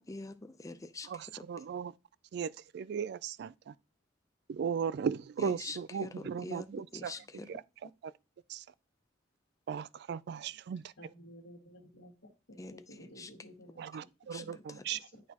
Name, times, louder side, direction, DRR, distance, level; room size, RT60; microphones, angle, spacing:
voice 1, 0.0-1.5 5.4-7.9 12.6-12.7 13.0-13.3 14.3-14.4 14.7-14.9, left 2 dB, 20° left, 0.5 m, -45 dB
voice 2, 1.5-1.9 2.3-3.7 4.5-7.1 8.5-8.6 9.7-10.8 13.8-15.0, right 7 dB, 60° right, 0.3 m, -36 dB
voice 3, 11.0-14.1 14.4-15.2, equal, 70° left, 1.8 m, -54 dB
11.0 x 4.1 x 2.9 m
head